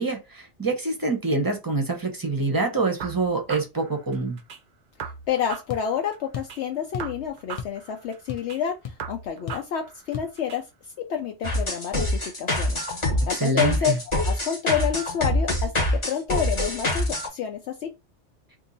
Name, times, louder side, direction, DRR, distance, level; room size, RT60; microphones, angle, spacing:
voice 1, 0.0-4.4 13.4-14.0, right 3 dB, 20° right, 0.7 m, -26 dB
sound 1, 3.0-4.6 5.0-6.6 7.0-8.6 9.0-10.6, right 6 dB, 55° right, 0.5 m, -39 dB
voice 2, 5.0-10.6 11.0-12.8 13.3-13.9 14.2-17.9, left 8 dB, 70° left, 0.8 m, -29 dB
sound 2, 5.7-5.9 6.3-6.6 6.9-7.2 7.6-7.8 8.1-8.6 8.8-9.0 9.5-9.7 10.1-10.3, left 7 dB, 50° left, 0.4 m, -35 dB
sound 3, 11.4-17.3, left 1 dB, 25° left, 0.9 m, -25 dB
2.7 x 2.7 x 3.9 m
omnidirectional pair, 1.3 m